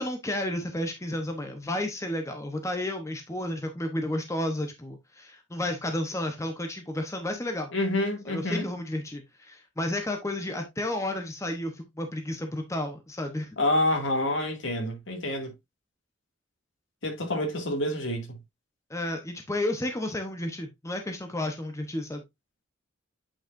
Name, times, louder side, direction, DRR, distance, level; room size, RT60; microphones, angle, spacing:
voice 1, 0.0-7.7 8.3-13.6 18.9-22.2, left 1 dB, 15° left, 0.9 m, -32 dB
voice 2, 7.7-8.7 13.6-15.5 17.0-18.4, left 1 dB, 70° left, 2.3 m, -27 dB
8.8 x 4.8 x 2.6 m
head